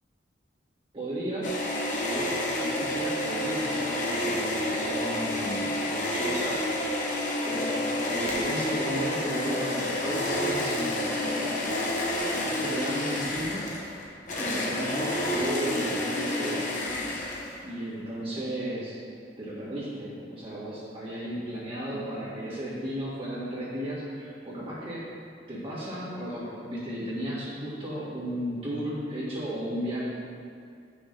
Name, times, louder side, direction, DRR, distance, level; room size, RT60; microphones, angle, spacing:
voice 1, 0.9-1.6 1.9-6.6 7.0-11.8 12.3-13.7 14.4-16.8 17.6-19.0 19.4-25.0 25.5-30.0, right 1 dB, 30° right, -9 dB, 1.8 m, -34 dB
sound 1, 1.4-17.7, left 1 dB, 45° left, 1.1 m, -29 dB
9.5 x 6.3 x 3.3 m, 2.4 s
head